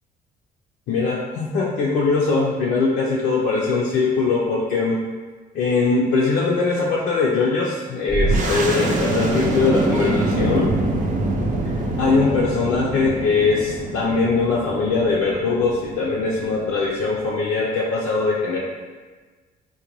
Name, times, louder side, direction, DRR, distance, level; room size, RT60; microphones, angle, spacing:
voice 1, 0.9-5.0 5.5-10.7 11.6-18.6, left 4 dB, 70° left, -5 dB, 0.5 m, -21 dB
sound 1, 8.1-17.3, right 2 dB, 50° right, 0.5 m, -25 dB
3.9 x 2.2 x 2.9 m, 1.4 s
cardioid pair, 110°, 17 cm